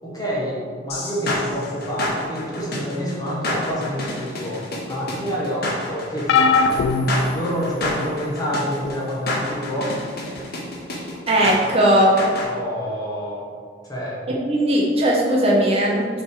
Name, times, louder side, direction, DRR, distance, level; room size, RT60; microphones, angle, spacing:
voice 1, 0.0-6.8 7.3-9.9 12.4-13.5 13.8-14.2, equal, 20° left, -5 dB, 1.5 m, -28 dB
sound 1, 0.9-12.5, left 1 dB, 55° left, 1.2 m, -29 dB
sound 2, 6.3-8.1 8.8-9.1 10.4-10.5, left 4 dB, 75° left, 0.3 m, -21 dB
voice 2, 10.9-12.2 14.4-16.1, equal, 35° right, -3 dB, 0.7 m, -18 dB
6.4 x 3.4 x 4.6 m, 2.1 s
head